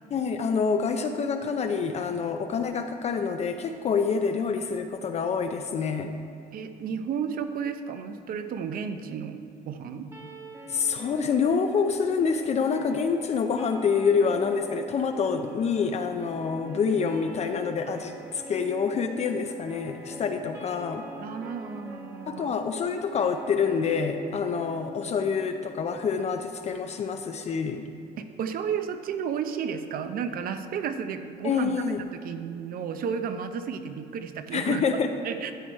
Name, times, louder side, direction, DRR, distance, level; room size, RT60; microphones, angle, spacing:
voice 1, 0.1-6.1 10.7-21.1 22.3-27.8 31.4-32.0 34.5-35.1, left 5 dB, 40° left, 6 dB, 0.5 m, -27 dB
voice 2, 6.5-9.4 9.7-10.1 21.2-22.5 28.2-31.7 32.1-34.8 35.2-35.5, right 7 dB, 60° right, 9 dB, 0.7 m, -32 dB
sound 1, 10.1-26.2, equal, 15° right, 1.2 m, -44 dB
12.5 x 4.7 x 4.6 m, 2.3 s
cardioid pair, 110°, 17 cm